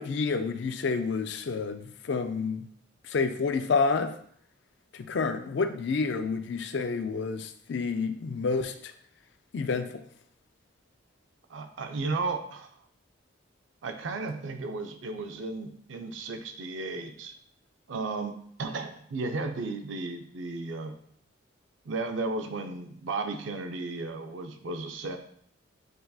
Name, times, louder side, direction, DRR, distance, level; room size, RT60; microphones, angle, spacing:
voice 1, 0.0-2.7 3.1-4.1 4.9-8.9 9.5-9.9, left 4 dB, 60° left, 9 dB, 0.4 m, -29 dB
voice 2, 11.5-12.7 13.8-17.3 17.9-21.0 21.9-25.2, right 3 dB, 70° right, 5 dB, 0.5 m, -34 dB
7.8 x 2.6 x 2.3 m, 0.63 s
head